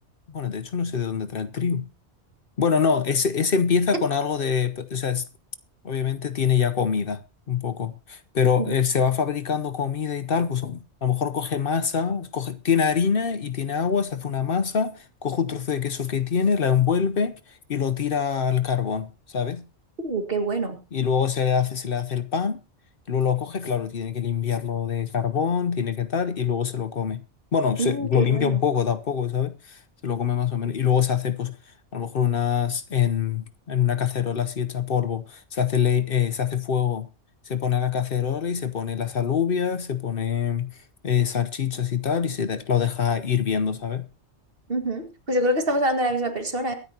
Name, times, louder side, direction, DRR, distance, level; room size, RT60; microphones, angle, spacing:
voice 1, 0.3-1.8 2.6-5.2 5.8-19.7 20.9-22.6 23.1-27.2 27.5-37.1 37.5-40.8 41.0-44.1, left 7 dB, 55° left, 0.9 m, -25 dB
voice 2, 20.0-20.8 27.8-28.6 44.7-46.7, right 1 dB, 55° right, 2.1 m, -25 dB
23.0 x 9.7 x 2.8 m
omnidirectional pair, 1.2 m